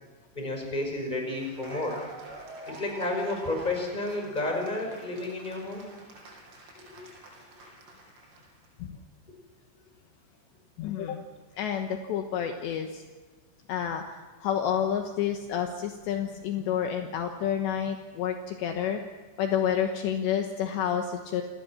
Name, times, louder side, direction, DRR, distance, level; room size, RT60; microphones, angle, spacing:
voice 1, 0.3-2.0 2.7-5.9 6.8-7.0, left 2 dB, 10° left, 2 dB, 5.4 m, -31 dB
Cheering / Applause, 1.1-8.7, right 2 dB, 80° right, 7.3 m, -47 dB
voice 2, 10.8-11.2 11.6-13.0 13.7-19.0 19.4-21.4, left 9 dB, 75° left, 4 dB, 3.2 m, -29 dB
29.5 x 19.0 x 6.1 m, 1.3 s
omnidirectional pair, 5.6 m